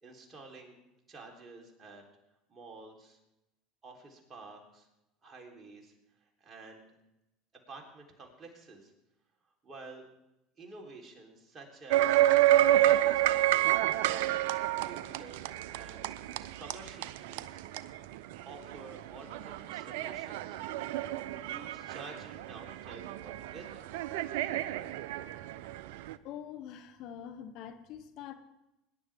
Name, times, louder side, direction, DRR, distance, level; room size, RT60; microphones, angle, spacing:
voice 1, 0.0-0.8 1.1-2.0 2.5-3.2 3.8-4.9 5.2-6.9 7.7-8.9 9.6-10.1 10.6-14.5 14.8-17.6 18.4-23.8, right 3 dB, 30° right, 0 dB, 3.5 m, -50 dB
sound 1, 11.9-26.1, right 14 dB, 75° right, 0.5 m, -29 dB
voice 2, 26.2-28.3, left 9 dB, 60° left, 10 dB, 1.0 m, -44 dB
20.5 x 10.5 x 3.5 m, 0.90 s
hypercardioid pair, 85°, 0 cm